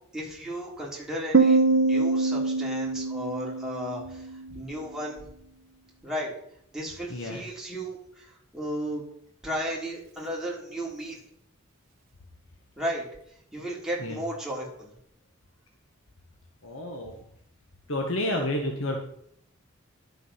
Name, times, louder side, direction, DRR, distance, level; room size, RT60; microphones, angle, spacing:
voice 1, 0.1-4.3 4.5-5.3 6.0-6.3 6.7-9.0 9.4-11.2 12.8-13.0 13.5-14.9, equal, ahead, -4 dB, 3.3 m, -34 dB
Piano, 1.3-4.8, right 3 dB, 70° right, 0.9 m, -24 dB
voice 2, 7.1-7.4 14.0-14.2 16.6-17.2 17.9-19.0, left 1 dB, 70° left, 2 dB, 1.5 m, -30 dB
12.0 x 7.3 x 5.8 m, 0.70 s
head